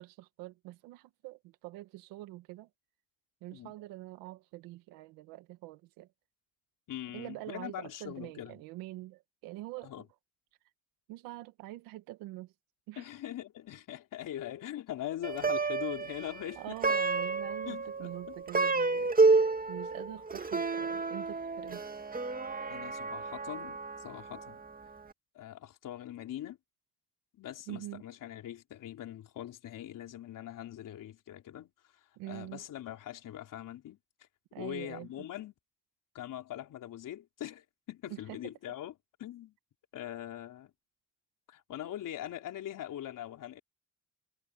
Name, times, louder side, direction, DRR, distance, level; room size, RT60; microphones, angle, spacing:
voice 1, 0.0-2.7 3.4-6.1 7.1-10.1 11.1-12.5 12.9-13.1 16.6-21.8 27.7-28.0 32.2-32.6 34.5-35.1 38.1-38.5, right 17 dB, 90° right, 1.6 m, -45 dB
voice 2, 6.9-8.6 9.8-10.0 13.0-16.7 17.6-18.4 22.7-24.6 25.3-26.6 27.4-31.7 32.3-34.0 34.6-35.5 36.1-38.9 39.2-39.6 39.9-40.7 41.5-43.6, left 12 dB, 70° left, 4.1 m, -42 dB
Plucked string instrument, 15.2-24.6, right 3 dB, 25° right, 2.3 m, -30 dB
supercardioid pair, 60°, 33 cm